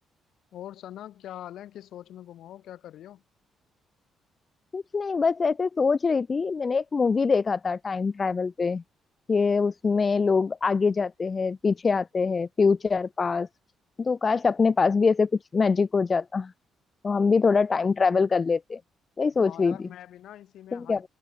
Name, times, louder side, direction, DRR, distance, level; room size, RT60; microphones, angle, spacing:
voice 1, 0.5-3.2 19.4-21.1, left 12 dB, 75° left, 1.6 m, -43 dB
voice 2, 4.7-8.8 9.3-13.5 14.0-16.5 17.0-18.8 19.2-19.8 20.7-21.0, left 4 dB, 40° left, 0.3 m, -24 dB
supercardioid pair, 65°, 0 cm